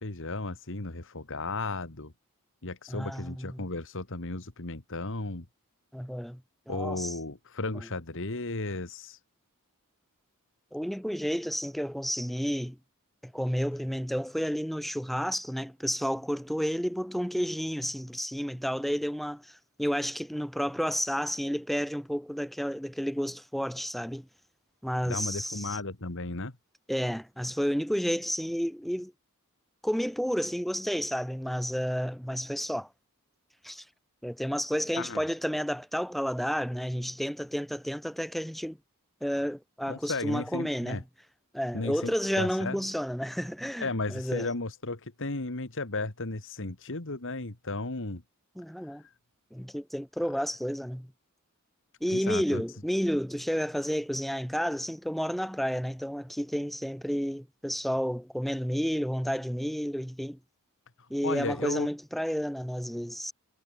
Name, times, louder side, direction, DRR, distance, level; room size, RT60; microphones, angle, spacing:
voice 1, 0.0-2.1 2.6-5.5 6.7-9.2 25.1-26.5 35.0-35.2 39.9-41.0 41.7-42.8 43.8-48.2 48.8-49.1 52.1-52.6 61.0-61.9, left 2 dB, 60° left, 2.2 m, -35 dB
voice 2, 2.9-3.6 5.9-6.4 6.7-7.1 10.7-12.8 13.2-24.3 24.8-25.8 26.9-29.1 29.8-32.9 33.6-33.8 34.2-38.8 39.2-41.0 41.5-44.5 48.5-49.0 49.5-51.1 52.0-60.4 61.1-63.3, equal, ahead, 1.4 m, -31 dB
head